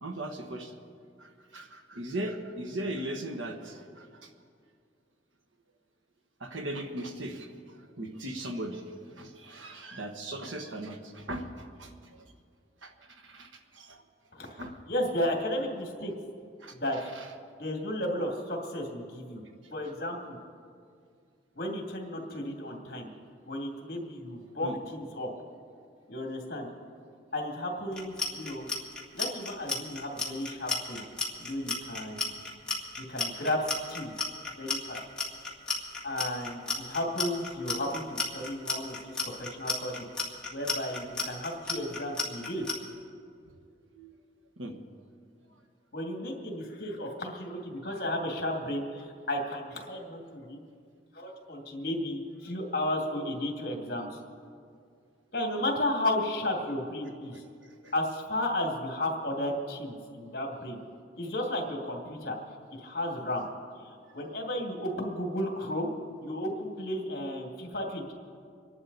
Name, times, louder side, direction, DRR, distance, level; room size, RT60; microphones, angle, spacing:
voice 1, 0.0-0.8 1.2-4.1 6.4-7.5 8.0-8.8 9.2-11.5 11.8-11.9 12.8-12.9 13.2-13.5 13.7-14.0 14.6-14.7 16.6-16.7 24.6-24.8 43.9-44.1 44.6-44.8 57.8-57.9, right 1 dB, 90° right, 5 dB, 1.4 m, -38 dB
voice 2, 14.9-16.1 16.7-17.1 17.6-19.4 19.7-20.4 21.6-23.1 23.5-25.3 26.1-26.7 27.3-28.7 29.1-31.0 31.4-32.4 33.0-34.1 34.6-35.0 36.0-39.1 39.4-40.1 40.5-42.6 45.9-50.6 51.1-54.2 55.3-57.4 57.9-60.8 61.2-62.4 62.7-63.5 63.8-65.9 66.2-68.1, left 1 dB, 50° left, 1 dB, 2.4 m, -33 dB
Clock, 27.9-42.7, left 4 dB, 5° left, 1.7 m, -32 dB
25.5 x 11.0 x 4.1 m, 2.2 s
head